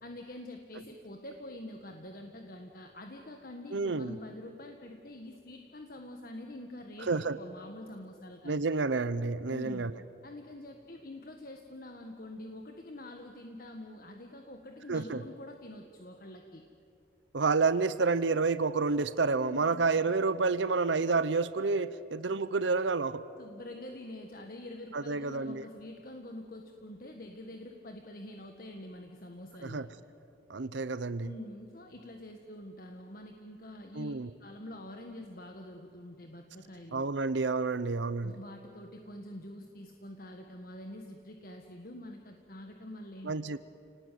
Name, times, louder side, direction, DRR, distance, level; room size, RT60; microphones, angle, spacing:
voice 1, 0.0-8.6 9.5-9.9 10.2-16.6 19.4-19.8 22.3-22.4 23.4-29.9 31.2-34.1 34.4-37.0 38.2-43.3, left 1 dB, 50° left, 4 dB, 1.6 m, -46 dB
voice 2, 3.7-4.1 7.1-7.4 8.4-9.9 14.9-15.2 17.3-23.2 24.9-25.6 29.6-29.9 30.5-31.3 33.9-34.3 36.9-38.3 43.2-43.6, right 4 dB, 80° right, 14 dB, 0.7 m, -29 dB
30.0 x 19.0 x 9.4 m, 2.5 s
head